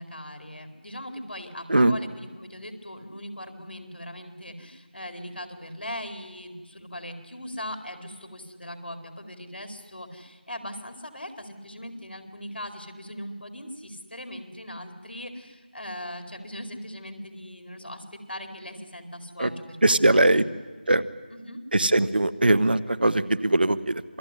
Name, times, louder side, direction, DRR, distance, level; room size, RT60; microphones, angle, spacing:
voice 1, 0.0-20.5 21.3-21.6, left 1 dB, 85° left, 6 dB, 4.5 m, -39 dB
voice 2, 19.8-20.4 20.9-21.0 21.7-24.0, right 2 dB, 65° right, 13 dB, 1.3 m, -20 dB
27.0 x 19.5 x 10.0 m, 1.3 s
figure-of-eight pair, 170°, 6 cm